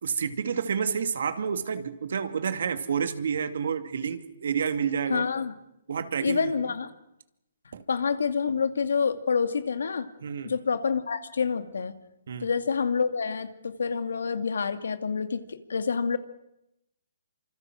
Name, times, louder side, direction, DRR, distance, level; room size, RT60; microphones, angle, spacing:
voice 1, 0.0-5.3 5.9-6.7 7.7-7.8 10.2-10.5 12.3-12.5, right 7 dB, 65° right, 9 dB, 2.5 m, -29 dB
voice 2, 5.1-5.5 6.2-6.9 7.9-10.1 10.4-11.9 12.4-16.2, left 5 dB, 85° left, 10 dB, 2.3 m, -27 dB
27.0 x 26.0 x 6.3 m, 0.86 s
hypercardioid pair, 160°, 0 cm